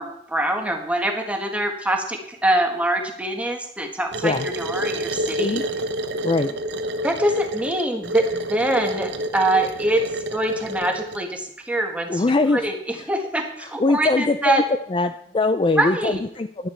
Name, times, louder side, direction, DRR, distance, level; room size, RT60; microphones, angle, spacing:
voice 1, 0.0-5.6 7.0-10.0 10.3-12.2 12.5-14.6 15.8-16.2, right 1 dB, 5° right, 3 dB, 1.6 m, -24 dB
sound 1, 4.1-11.2, right 1 dB, 60° right, 0.9 m, -28 dB
voice 2, 6.2-6.6 12.1-12.7 13.0-13.1 13.8-14.6 14.9-16.7, left 3 dB, 25° left, 10 dB, 0.4 m, -22 dB
11.0 x 11.0 x 4.5 m, 0.73 s
head